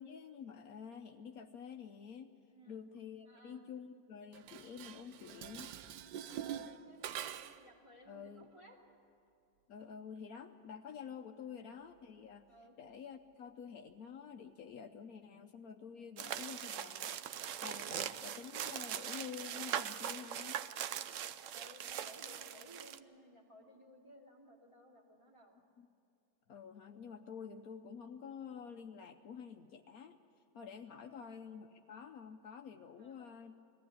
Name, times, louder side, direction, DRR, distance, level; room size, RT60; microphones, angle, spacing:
voice 1, 0.0-2.3 2.7-5.7 8.1-8.5 9.7-12.5 12.8-17.2 17.6-20.6 25.8-25.9 26.5-30.2 30.5-33.6, left 7 dB, 65° left, 6 dB, 1.1 m, -49 dB
voice 2, 2.5-2.8 3.3-3.6 6.2-8.8 11.3-11.6 12.5-12.8 21.5-25.6 31.0-31.2 33.0-33.4, equal, 20° right, -2 dB, 2.7 m, -59 dB
Dishes pots and pans, 4.3-7.7, right 10 dB, 85° right, 1.3 m, -45 dB
sound 1, 16.2-23.0, right 10 dB, 65° right, 0.8 m, -41 dB
20.5 x 15.5 x 9.8 m, 2.7 s
omnidirectional pair, 1.7 m